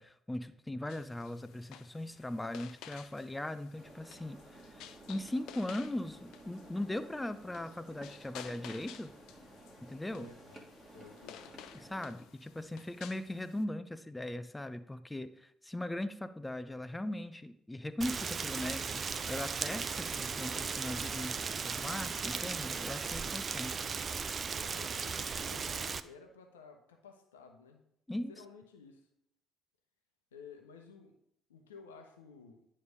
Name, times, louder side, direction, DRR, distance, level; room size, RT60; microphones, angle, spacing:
voice 1, 0.0-4.4 4.7-9.1 9.8-10.3 11.8-19.0 19.3-23.7 28.1-28.3, left 1 dB, 10° left, 12 dB, 0.6 m, -39 dB
sound 1, 0.9-13.6, left 10 dB, 65° left, 0.4 m, -54 dB
sound 2, 3.7-12.1, right 1 dB, 20° right, 1.5 m, -54 dB
voice 2, 10.0-11.5 24.4-27.8 28.3-29.1 30.3-31.2 31.5-32.7, left 5 dB, 80° left, 5 dB, 0.8 m, -54 dB
Rain, 18.0-26.0, right 5 dB, 40° right, 0.4 m, -37 dB
9.6 x 3.3 x 5.2 m, 0.76 s
figure-of-eight pair, 50°, 0 cm